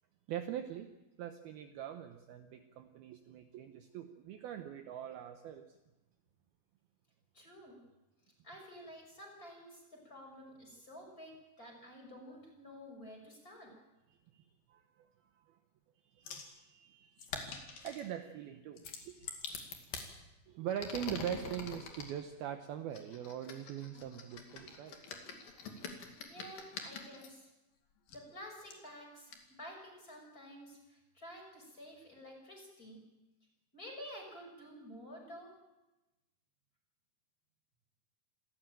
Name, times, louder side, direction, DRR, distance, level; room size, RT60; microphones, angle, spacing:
voice 1, 0.3-0.9 1.2-5.8 14.3-15.1 15.3-15.6 16.1-19.3 20.5-25.0, right 10 dB, 70° right, 7 dB, 2.6 m, -43 dB
voice 2, 7.3-7.8 8.4-13.7 26.3-27.5 28.1-33.0 33.7-35.5, equal, 20° left, 0 dB, 6.5 m, -51 dB
sound 1, 16.3-16.5 17.2-18.1 18.8-20.1 20.7-22.1 22.9-27.3 28.1-28.2 28.7-28.8 29.3-29.4, left 5 dB, 55° left, 3.7 m, -45 dB
27.5 x 14.0 x 9.0 m, 1.0 s
omnidirectional pair, 5.1 m